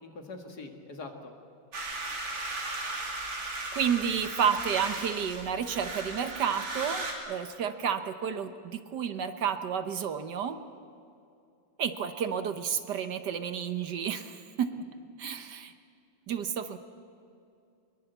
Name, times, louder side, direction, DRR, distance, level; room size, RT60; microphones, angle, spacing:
voice 1, 0.0-1.3, left 3 dB, 55° left, 4 dB, 2.5 m, -43 dB
sound 1, 1.7-7.1, right 2 dB, 80° right, 3.8 m, -36 dB
voice 2, 3.7-10.6 11.8-14.8 15.2-15.7 16.3-16.8, right 7 dB, 65° right, 10 dB, 1.5 m, -31 dB
22.5 x 22.5 x 8.1 m, 2.5 s
omnidirectional pair, 2.1 m